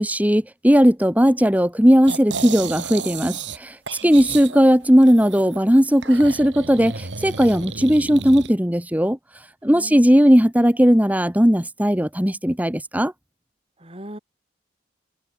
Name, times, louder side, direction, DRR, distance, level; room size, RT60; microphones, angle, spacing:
voice 1, 0.0-3.8 4.0-9.2 9.6-13.1, equal, 10° right, 1.9 m, -17 dB
sound 1, 2.1-3.6 3.9-5.6 6.0-8.5, right 5 dB, 85° right, 2.3 m, -33 dB
voice 2, 9.6-10.3 13.8-14.2, equal, 30° right, 6.4 m, -40 dB
head